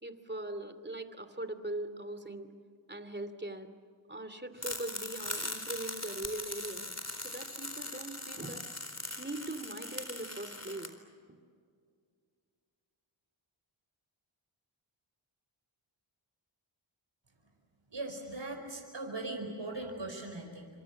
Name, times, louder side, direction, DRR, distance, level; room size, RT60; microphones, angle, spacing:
voice 1, 0.0-2.5 2.9-3.7 4.1-6.9 7.2-8.6 9.2-10.9, right 1 dB, 20° right, 10 dB, 2.8 m, -41 dB
sound 1, 4.6-10.9, left 2 dB, 30° left, 4.1 m, -40 dB
voice 2, 17.9-20.7, right 2 dB, 60° right, 2 dB, 4.9 m, -39 dB
28.5 x 26.5 x 7.3 m, 2.2 s
wide cardioid pair, 45°, 49 cm